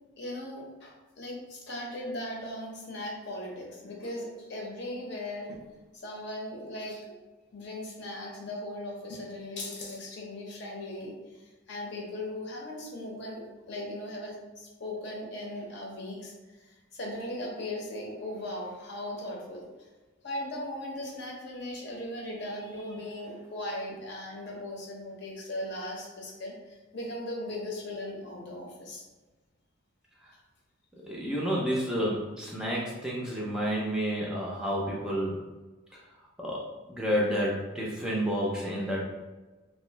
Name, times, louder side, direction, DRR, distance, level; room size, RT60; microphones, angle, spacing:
voice 1, 0.2-5.6 5.9-7.1 7.5-19.9 20.2-29.0, left 1 dB, 55° left, -1 dB, 0.8 m, -38 dB
voice 2, 31.0-35.4 36.4-39.0, equal, 5° right, -5 dB, 0.5 m, -30 dB
3.0 x 2.7 x 3.2 m, 1.2 s
head